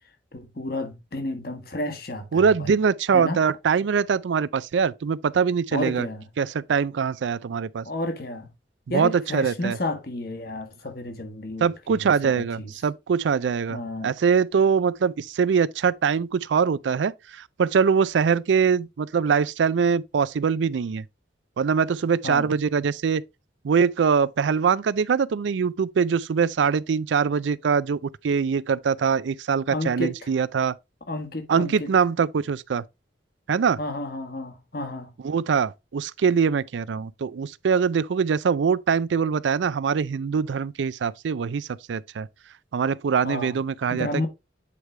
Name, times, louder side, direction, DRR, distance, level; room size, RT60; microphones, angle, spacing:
voice 1, 0.3-2.8 3.1-3.4 5.7-6.3 7.8-8.5 8.9-12.7 13.7-14.2 22.2-22.5 29.7-30.3 31.1-31.9 33.8-35.1 43.2-43.6 43.9-44.3, left 1 dB, 55° left, 1.4 m, -31 dB
voice 2, 2.3-6.1 6.4-7.9 8.9-9.8 11.6-21.0 21.6-23.2 23.6-30.7 31.5-32.8 33.5-33.8 35.2-42.3 42.7-44.1, right 6 dB, 90° right, 0.4 m, -23 dB
8.4 x 4.7 x 3.2 m
head